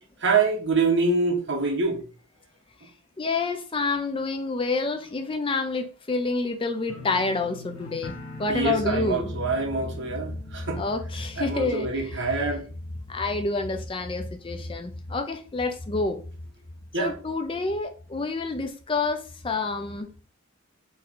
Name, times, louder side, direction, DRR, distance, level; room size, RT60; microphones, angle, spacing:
voice 1, 0.2-2.0 8.5-10.8 11.4-12.6 16.9-17.1, right 4 dB, 55° right, 1.4 m, -25 dB
voice 2, 3.2-8.1 8.4-9.3 10.7-12.2 13.1-16.2 17.0-20.1, left 3 dB, 25° left, 0.4 m, -28 dB
sound 1, 6.9-13.8 14.1-14.6 15.0-15.1, left 2 dB, 85° left, 1.1 m, -43 dB
4.4 x 3.1 x 3.8 m
head